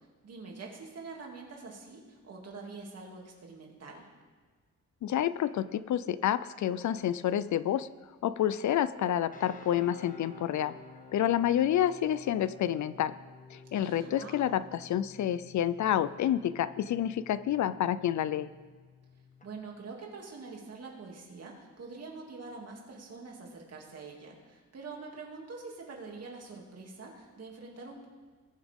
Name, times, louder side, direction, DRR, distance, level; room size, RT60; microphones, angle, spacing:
voice 1, 0.2-4.1 13.7-14.7 19.4-28.1, right 4 dB, 55° right, -1 dB, 2.7 m, -45 dB
voice 2, 5.0-7.9 8.2-10.7 11.1-13.1 13.5-18.5, left 11 dB, 65° left, 16 dB, 0.5 m, -29 dB
sound 1, 9.3-19.5, left 3 dB, 25° left, 1.3 m, -53 dB
20.5 x 8.7 x 3.7 m, 1.5 s
wide cardioid pair, 130°, 31 cm